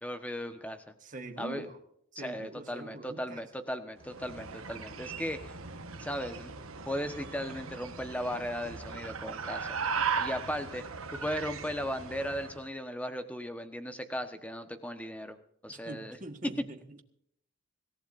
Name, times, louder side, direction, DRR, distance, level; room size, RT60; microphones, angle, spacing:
voice 1, 0.0-0.9 1.4-1.7 2.1-5.5 6.0-6.5 6.9-9.8 10.2-10.8 11.2-15.4 15.6-16.2 16.4-16.5, equal, 5° left, 7 dB, 1.2 m, -36 dB
voice 2, 1.0-1.8 2.1-3.4 15.7-17.0, right 2 dB, 35° right, 5 dB, 1.6 m, -44 dB
sound 1, 4.0-12.6, right 6 dB, 80° right, 1.4 m, -38 dB
25.5 x 15.5 x 2.6 m, 0.72 s
head